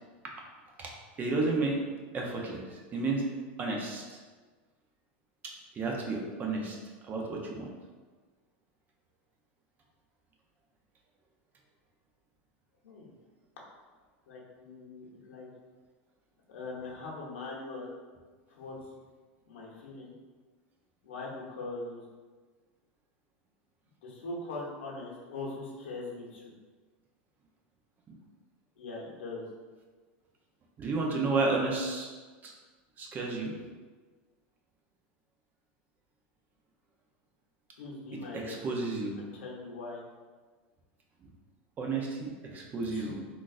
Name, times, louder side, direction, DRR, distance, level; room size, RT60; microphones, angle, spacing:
voice 1, 1.2-1.8 2.1-3.3 3.6-4.2 5.4-6.8 7.0-7.7 28.1-28.2 30.8-32.1 32.4-32.5 33.0-33.5 38.3-39.2 41.8-43.1, right 3 dB, 30° right, -1 dB, 0.6 m, -32 dB
voice 2, 14.3-15.5 16.5-17.9 18.5-18.8 19.5-20.1 21.0-22.0 24.0-26.5 28.8-29.5 37.8-38.6 39.2-40.0 42.9-43.1, left 3 dB, 85° left, -3 dB, 0.9 m, -41 dB
3.7 x 2.5 x 2.4 m, 1.4 s
supercardioid pair, 120°, 6 cm